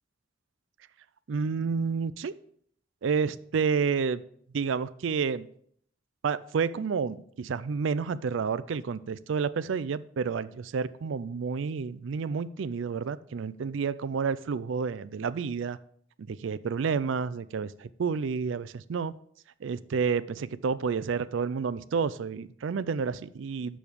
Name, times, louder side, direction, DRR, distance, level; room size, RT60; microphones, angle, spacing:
voice 1, 1.3-2.3 3.0-4.2 4.5-5.5 6.2-15.8 16.2-19.2 19.6-23.8, right 5 dB, 70° right, 16 dB, 0.4 m, -30 dB
6.9 x 6.1 x 7.0 m, 0.64 s
head